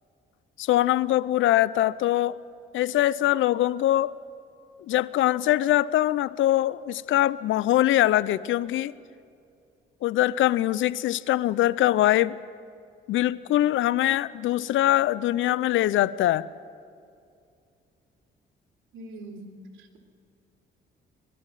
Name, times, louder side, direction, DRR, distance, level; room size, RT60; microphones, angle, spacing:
voice 1, 0.6-2.4 2.7-4.1 4.9-8.9 10.0-12.4 13.1-16.5, left 14 dB, 75° left, 19 dB, 0.6 m, -23 dB
voice 2, 18.9-19.5 19.8-20.0, right 2 dB, 85° right, 2 dB, 3.0 m, -42 dB
22.0 x 13.5 x 9.1 m, 2.4 s
cardioid pair, 90°, 20 cm